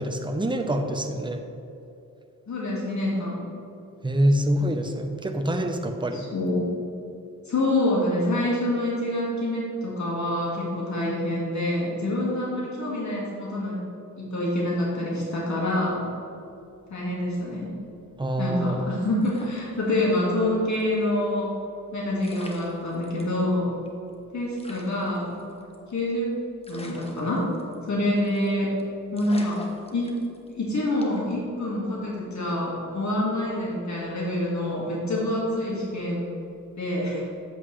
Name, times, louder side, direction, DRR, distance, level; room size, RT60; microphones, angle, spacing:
voice 1, 0.0-1.4 4.0-6.3 15.2-15.3 18.2-18.8, right 1 dB, 15° right, 4 dB, 0.7 m, -26 dB
voice 2, 2.5-3.4 6.1-6.6 7.5-13.8 14.2-16.0 16.9-17.7 18.4-21.5 21.9-23.7 24.3-25.4 25.9-26.4 26.7-27.4 27.9-28.7 29.1-29.6 29.9-30.2 30.5-36.2 36.8-37.3, left 1 dB, 60° left, -5 dB, 1.9 m, -26 dB
sound 1, 19.2-20.4 20.7-20.8 21.9-22.0 22.2-23.4 23.9-24.0 24.1-24.2 24.6-26.1 26.6-27.9 28.2-28.5 28.8-28.9 29.2-30.5 31.0-31.3, left 1 dB, 20° left, 1.1 m, -45 dB
7.9 x 7.9 x 3.2 m, 2.7 s
cardioid pair, 80°, 33 cm